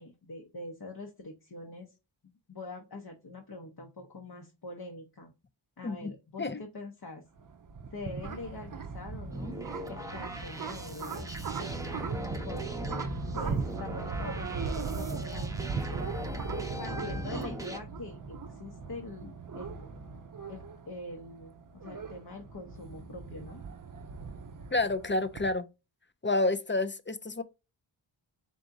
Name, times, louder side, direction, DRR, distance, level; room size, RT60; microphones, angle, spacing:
voice 1, 0.0-1.9 2.5-5.3 5.8-7.2 7.9-9.6 9.9-11.4 12.4-13.0 13.3-15.9 16.8-20.0 20.5-23.6, left 2 dB, 50° left, 0.8 m, -44 dB
sound 1, 7.4-25.5, right 4 dB, 45° right, 0.5 m, -38 dB
sound 2, 9.3-17.8, equal, 5° right, 0.7 m, -40 dB
voice 2, 24.7-25.7 26.2-27.4, left 2 dB, 25° left, 0.4 m, -29 dB
3.9 x 3.6 x 2.6 m
wide cardioid pair, 55°, 48 cm